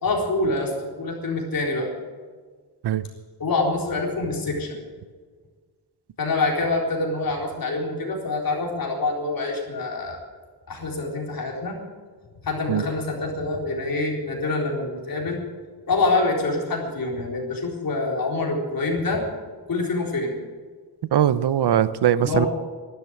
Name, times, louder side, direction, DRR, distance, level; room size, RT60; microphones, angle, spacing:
voice 1, 0.0-1.9 3.4-4.8 6.2-10.2 10.7-11.8 12.4-15.4 15.9-19.2 19.7-20.3 22.2-22.5, left 3 dB, 60° left, -1 dB, 4.0 m, -26 dB
voice 2, 21.1-22.5, right 10 dB, 85° right, 15 dB, 0.8 m, -20 dB
12.5 x 12.0 x 9.3 m, 1.5 s
wide cardioid pair, 145°, 39 cm